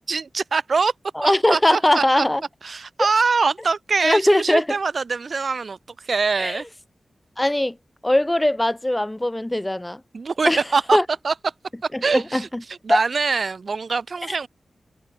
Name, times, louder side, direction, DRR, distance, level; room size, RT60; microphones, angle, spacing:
voice 1, 0.1-0.9 1.2-2.2 2.6-5.8 6.0-6.6 10.1-11.0 11.2-11.3 12.0-14.5, right 4 dB, 65° right, 0.6 m, -23 dB
voice 2, 1.2-2.4 4.0-4.8 6.4-6.6 7.4-7.8 8.0-10.0 10.4-10.6 10.9-11.0 11.9-12.6 12.9-13.0 14.3-14.5, left 1 dB, 15° left, 0.7 m, -20 dB
wide cardioid pair, 70°, 0 cm